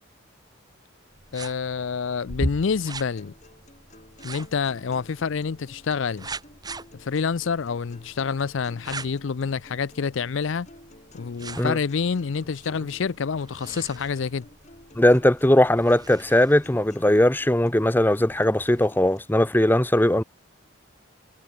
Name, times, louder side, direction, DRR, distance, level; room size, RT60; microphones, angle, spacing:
sound 1, 1.1-18.9, right 1 dB, 20° right, 3.2 m, -41 dB
voice 1, 1.3-3.3 4.2-6.3 7.0-10.7 11.1-14.5, left 5 dB, 65° left, 0.5 m, -27 dB
sound 2, 3.2-19.2, left 1 dB, 35° left, 6.8 m, -52 dB
voice 2, 15.0-20.2, left 1 dB, 10° left, 0.7 m, -19 dB
head